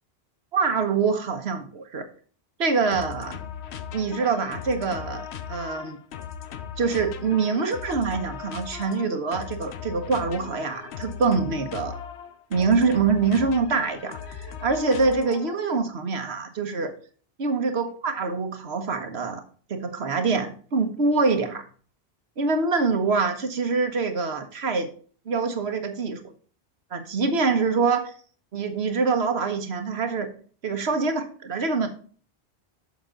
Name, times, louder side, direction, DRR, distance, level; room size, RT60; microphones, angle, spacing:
voice 1, 0.5-2.1 2.6-3.4 3.9-6.0 6.8-12.0 12.5-16.9 17.4-19.4 19.7-21.6 22.4-24.9 25.3-26.3 26.9-28.1 28.5-30.3 30.6-31.9, right 4 dB, 80° right, 8 dB, 1.4 m, -25 dB
sound 1, 2.9-15.7, left 8 dB, 80° left, 1.0 m, -38 dB
7.2 x 6.3 x 3.7 m, 0.42 s
omnidirectional pair, 1.1 m